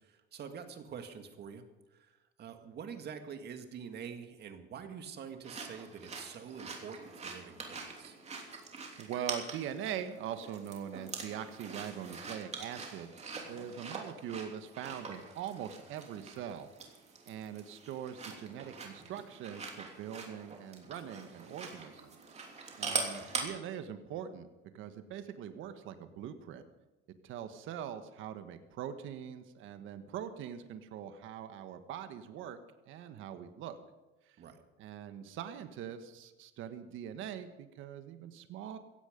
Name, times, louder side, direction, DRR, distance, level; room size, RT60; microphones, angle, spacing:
voice 1, 0.1-1.6 1.9-8.2 22.9-23.4 34.4-34.6, right 7 dB, 50° right, 6 dB, 2.1 m, -46 dB
sound 1, 5.4-23.4, right 4 dB, 30° right, 3.2 m, -43 dB
voice 2, 9.0-13.1 13.5-17.0 17.3-22.5 22.8-24.5 24.7-26.6 27.2-32.6 32.9-33.8 34.2-34.4 34.8-38.8, right 9 dB, 75° right, 9 dB, 1.4 m, -42 dB
16.5 x 15.5 x 5.3 m, 1.1 s
cardioid pair, 115°, 21 cm